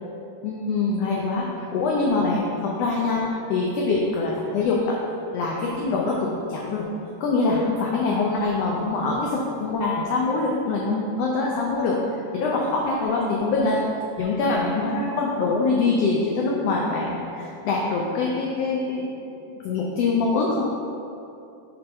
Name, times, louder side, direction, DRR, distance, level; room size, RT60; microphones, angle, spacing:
voice 1, 0.4-1.5 1.7-3.2 3.5-5.0 5.3-6.9 7.2-12.0 12.3-13.8 14.2-19.1 19.6-20.7, left 3 dB, 75° left, -3 dB, 1.5 m, -24 dB
5.3 x 4.4 x 5.5 m, 2.7 s
omnidirectional pair, 3.4 m